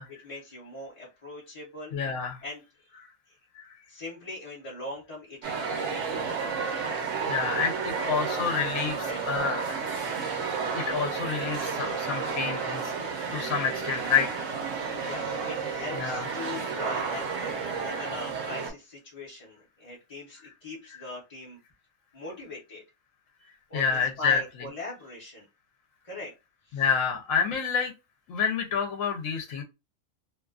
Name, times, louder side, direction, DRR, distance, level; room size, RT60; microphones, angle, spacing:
voice 1, 0.2-2.0 2.4-2.6 3.9-6.6 7.3-8.7 9.0-9.2 14.9-21.6 22.1-22.8 23.4-25.5 26.0-26.3 26.6-26.8, left 2 dB, 35° left, -5 dB, 0.7 m, -41 dB
voice 2, 1.9-2.4 3.6-3.7 7.3-9.9 10.7-12.9 13.3-14.6 16.0-16.3 23.7-24.4 26.7-27.9 28.3-29.6, left 6 dB, 75° left, 3 dB, 1.0 m, -28 dB
sound 1, 5.4-18.7, right 5 dB, 70° right, 1.1 m, -31 dB
2.6 x 2.3 x 2.3 m, 0.25 s
omnidirectional pair, 1.4 m